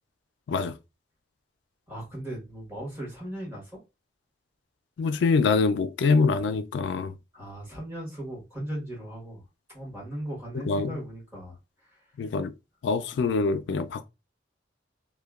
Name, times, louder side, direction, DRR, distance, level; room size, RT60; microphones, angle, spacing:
voice 1, 1.9-3.8 7.3-9.4 9.7-12.1, right 1 dB, 15° right, 1.2 m, -38 dB
voice 2, 5.0-7.1 10.5-11.0 12.2-12.5 12.8-14.1, left 4 dB, 70° left, 0.3 m, -25 dB
2.8 x 2.1 x 2.3 m
head